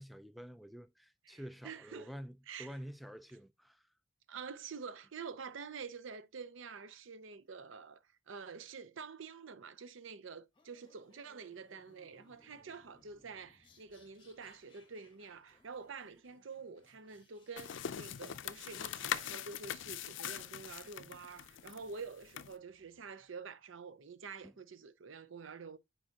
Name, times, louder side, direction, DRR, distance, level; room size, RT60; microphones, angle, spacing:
voice 1, 0.0-3.8 24.4-24.5, equal, ahead, 0.4 m, -48 dB
voice 2, 1.2-2.1 2.5-2.8 4.3-25.8, right 5 dB, 80° right, 0.6 m, -48 dB
sound 1, 10.5-23.3, left 2 dB, 25° left, 1.2 m, -68 dB
sound 2, 17.6-22.5, left 9 dB, 70° left, 0.4 m, -42 dB
8.7 x 4.7 x 2.8 m
head